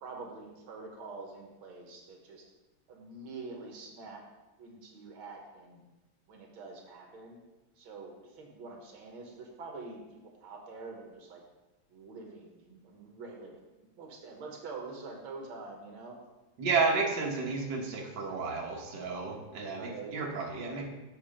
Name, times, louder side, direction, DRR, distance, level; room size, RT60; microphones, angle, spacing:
voice 1, 0.0-2.4 2.9-4.2 4.6-5.8 6.3-7.4 7.8-11.4 11.9-13.5 13.8-16.2 16.9-17.1 19.7-20.2, right 3 dB, 90° right, 1 dB, 2.0 m, -46 dB
voice 2, 16.6-20.8, right 4 dB, 60° right, -2 dB, 1.8 m, -32 dB
7.4 x 5.2 x 5.1 m, 1.1 s
omnidirectional pair, 2.2 m